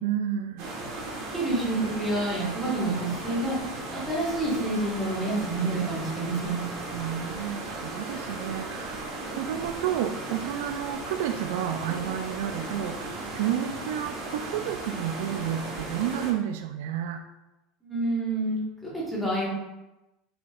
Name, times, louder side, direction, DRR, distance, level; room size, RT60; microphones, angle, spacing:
voice 1, 0.0-0.7 6.9-17.2, right 10 dB, 85° right, 7 dB, 0.3 m, -31 dB
sound 1, 0.6-16.3, right 2 dB, 60° right, 1.3 m, -36 dB
voice 2, 1.3-3.6 3.9-6.6 17.8-19.5, right 2 dB, ahead, -8 dB, 1.5 m, -28 dB
4.5 x 4.2 x 2.4 m, 0.98 s
cardioid pair, 170°, 0 cm